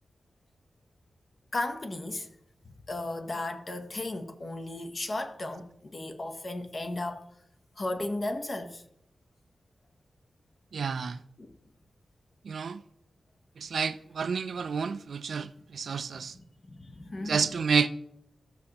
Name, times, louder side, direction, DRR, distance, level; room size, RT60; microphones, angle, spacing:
voice 1, 1.5-2.3 2.6-7.2 7.8-8.8 11.4-11.6 16.1-17.5, left 2 dB, 30° left, 0.8 m, -35 dB
voice 2, 10.7-11.2 12.4-12.8 13.6-16.3 17.2-17.9, right 5 dB, 65° right, 0.3 m, -30 dB
14.5 x 6.4 x 2.9 m
wide cardioid pair, 175°, 0 cm